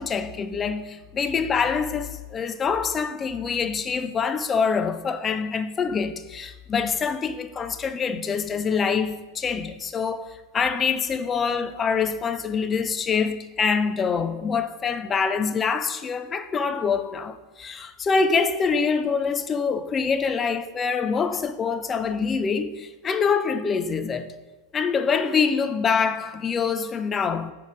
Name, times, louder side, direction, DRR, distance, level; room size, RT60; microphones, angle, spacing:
voice 1, 0.0-24.4 24.7-27.5, left 5 dB, 20° left, 0.6 m, -25 dB
8.9 x 3.9 x 5.0 m
figure-of-eight pair, 90°, 0 cm